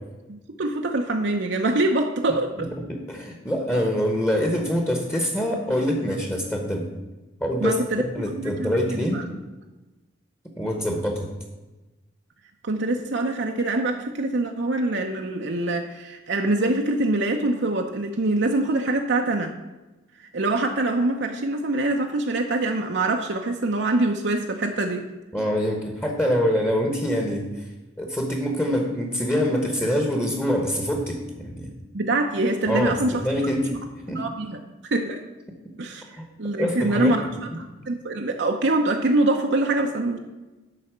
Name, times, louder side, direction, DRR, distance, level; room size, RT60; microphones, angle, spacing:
voice 1, 0.3-2.7 7.6-9.2 12.6-19.5 20.3-25.1 31.9-33.3 33.7-33.8 34.1-35.2 35.8-37.3 37.6-40.2, right 2 dB, 60° right, 3 dB, 0.7 m, -24 dB
voice 2, 2.6-6.9 7.4-9.2 10.6-11.3 25.3-27.6 28.0-31.7 32.7-33.8 34.1-34.3 36.2-36.3 36.6-37.2, equal, 10° left, 2 dB, 1.1 m, -25 dB
11.0 x 4.1 x 7.8 m, 1.1 s
head